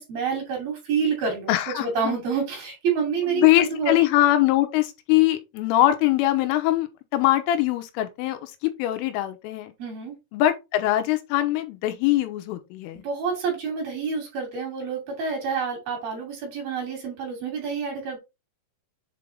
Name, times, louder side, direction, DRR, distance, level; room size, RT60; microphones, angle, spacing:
voice 1, 0.0-4.0 9.8-10.1 12.9-18.2, right 5 dB, 50° right, 3.8 m, -28 dB
voice 2, 1.5-2.2 3.4-8.5 8.8-9.7 10.3-13.0, left 14 dB, 85° left, 3.4 m, -22 dB
7.7 x 3.4 x 3.8 m
omnidirectional pair, 5.7 m